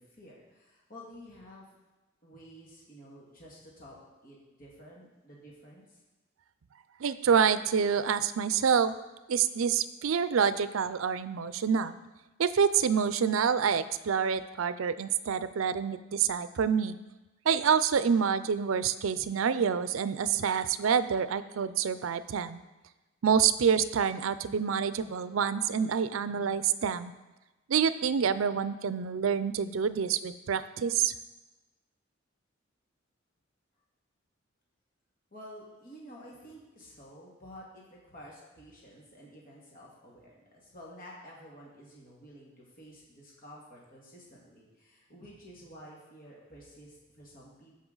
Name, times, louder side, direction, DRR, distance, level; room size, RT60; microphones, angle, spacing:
voice 1, 0.0-1.7 2.2-6.0 35.3-47.7, equal, 45° left, -4 dB, 1.9 m, -51 dB
voice 2, 7.0-8.9 9.3-12.0 12.4-16.9 17.5-22.6 23.2-27.1 27.7-31.1, right 7 dB, 85° right, 14 dB, 0.4 m, -27 dB
15.0 x 5.4 x 3.9 m, 1.1 s
head